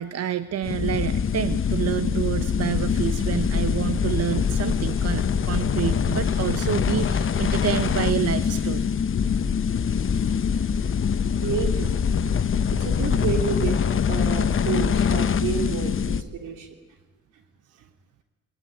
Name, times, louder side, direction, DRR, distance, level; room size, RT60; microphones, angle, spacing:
voice 1, 0.0-8.9, right 9 dB, 55° right, 12 dB, 1.0 m, -28 dB
sound 1, 0.6-16.2, left 7 dB, 45° left, 1.1 m, -24 dB
voice 2, 11.4-12.4 12.7-16.8 17.3-17.4, right 7 dB, 90° right, 5 dB, 3.4 m, -31 dB
21.0 x 20.5 x 9.3 m, 1.2 s
cardioid pair, 90°, 30 cm